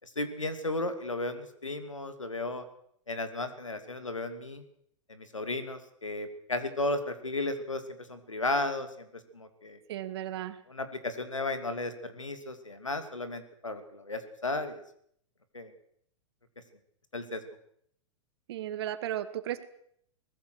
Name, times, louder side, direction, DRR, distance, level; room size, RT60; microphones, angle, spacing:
voice 1, 0.0-2.6 3.1-4.6 5.1-9.8 10.7-14.8 15.5-15.7 17.1-17.4, left 2 dB, 80° left, 10 dB, 2.8 m, -34 dB
voice 2, 9.9-10.6 18.5-19.6, right 12 dB, 55° right, 12 dB, 2.0 m, -35 dB
23.0 x 19.5 x 6.4 m, 0.68 s
figure-of-eight pair, 100°, 16 cm